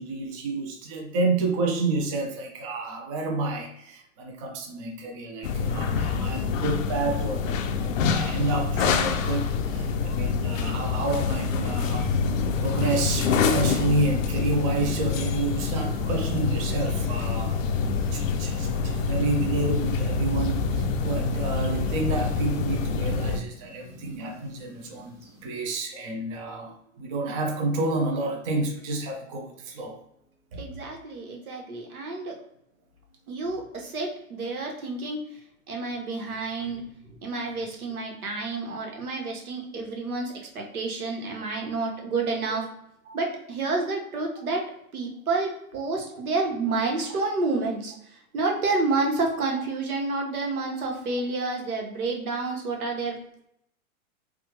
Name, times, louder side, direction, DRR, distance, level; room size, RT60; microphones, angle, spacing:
voice 1, 0.0-12.1 12.6-17.6 17.9-30.0 30.5-30.6 43.1-43.2, right 2 dB, 25° right, 1 dB, 0.4 m, -29 dB
sound 1, 5.4-23.4, left 5 dB, 65° left, 0.5 m, -26 dB
sound 2, 11.0-25.5, equal, 5° right, 0.9 m, -49 dB
voice 2, 30.6-32.4 33.3-35.2 35.7-36.8 37.1-42.7 43.1-44.7 44.9-53.4, right 3 dB, 80° right, 1 dB, 1.2 m, -29 dB
3.4 x 2.2 x 3.0 m, 0.75 s
hypercardioid pair, 135°, 43 cm